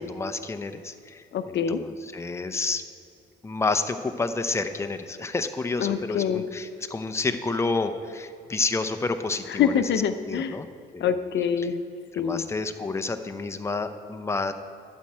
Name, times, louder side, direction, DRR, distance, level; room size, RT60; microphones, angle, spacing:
voice 1, 0.0-2.8 3.4-9.8 10.3-10.7 10.9-11.1 12.1-14.5, left 3 dB, 15° left, 8 dB, 0.6 m, -29 dB
voice 2, 1.3-1.8 5.8-6.4 9.5-10.6 11.0-11.8 12.2-12.5, left 8 dB, 65° left, 10 dB, 0.6 m, -25 dB
12.0 x 4.4 x 7.5 m, 2.4 s
cardioid pair, 90°, 20 cm